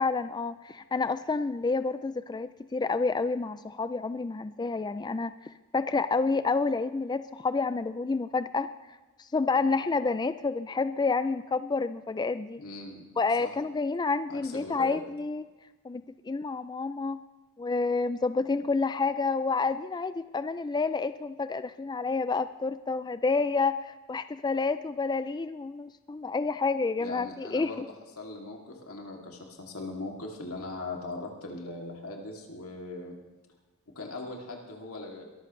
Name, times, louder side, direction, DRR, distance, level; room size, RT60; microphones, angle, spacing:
voice 1, 0.0-5.4 5.7-8.7 9.2-12.6 13.2-15.5 15.8-17.2 17.6-27.9, left 4 dB, 20° left, 12 dB, 0.3 m, -29 dB
voice 2, 12.6-13.0 13.4-13.5 14.3-15.0 27.0-27.8 28.2-33.1 33.9-35.2, left 2 dB, 90° left, 0 dB, 2.7 m, -40 dB
22.0 x 14.0 x 3.2 m, 1.2 s
head